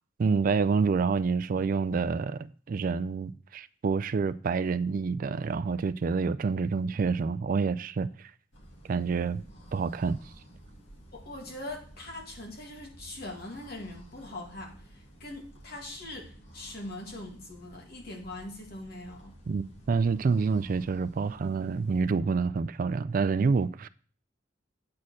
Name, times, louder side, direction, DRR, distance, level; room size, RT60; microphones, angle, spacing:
voice 1, 0.2-8.1 8.9-9.4 9.7-10.2 19.5-23.9, right 5 dB, 45° right, 0.3 m, -27 dB
sound 1, 8.5-22.1, right 1 dB, 75° left, 2.1 m, -52 dB
voice 2, 11.1-19.3, left 1 dB, 60° left, 2.2 m, -42 dB
8.6 x 4.3 x 6.2 m
head